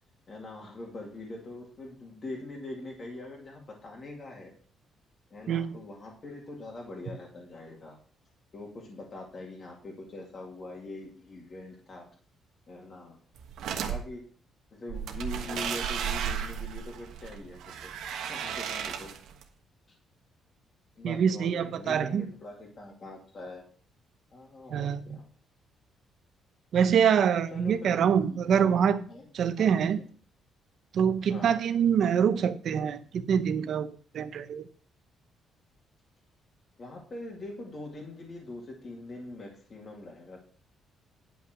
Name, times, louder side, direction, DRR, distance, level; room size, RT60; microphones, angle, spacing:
voice 1, 0.3-4.5 5.3-8.0 8.5-12.0 12.7-13.2 13.7-14.2 14.7-17.9 18.3-19.1 21.0-23.6 24.3-25.2 27.5-29.3 29.6-30.0 31.3-31.5 36.8-40.4, left 2 dB, 30° left, 2.3 m, -43 dB
sound 1, 13.4-14.0 14.9-19.4, right 8 dB, 75° right, 1.3 m, -34 dB
voice 2, 21.0-22.3 24.7-25.2 26.7-29.0 29.3-30.0 30.9-34.7, right 7 dB, 50° right, 0.8 m, -25 dB
10.5 x 5.7 x 6.1 m
cardioid pair, 175°, 0 cm